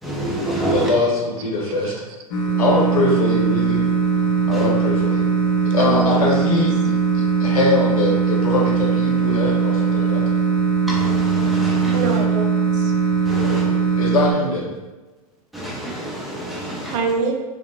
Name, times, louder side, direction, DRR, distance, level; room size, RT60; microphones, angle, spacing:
voice 1, 0.0-0.9 4.5-4.7 10.9-12.2 13.2-13.7 15.5-17.0, right 1 dB, ahead, 0.5 m, -27 dB
voice 2, 0.7-1.9 2.6-3.8 4.5-5.2 5.7-6.7 7.1-10.2 13.4-13.7 14.0-14.7, left 2 dB, 70° left, 0.9 m, -22 dB
sound 1, 2.3-14.3, right 5 dB, 50° left, 0.5 m, -20 dB
voice 3, 5.8-6.2 11.9-12.9 16.9-17.3, right 4 dB, 50° right, 0.4 m, -25 dB
2.7 x 2.0 x 2.3 m
hypercardioid pair, 105°, 20 cm